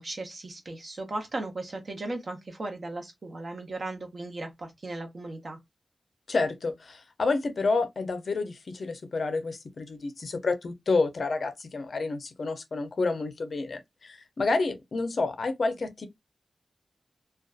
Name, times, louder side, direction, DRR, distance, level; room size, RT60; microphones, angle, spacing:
voice 1, 0.0-5.6, right 2 dB, 45° right, 0.7 m, -36 dB
voice 2, 6.3-16.1, left 3 dB, 55° left, 0.5 m, -29 dB
2.5 x 2.2 x 2.3 m
wide cardioid pair, 140°, 0 cm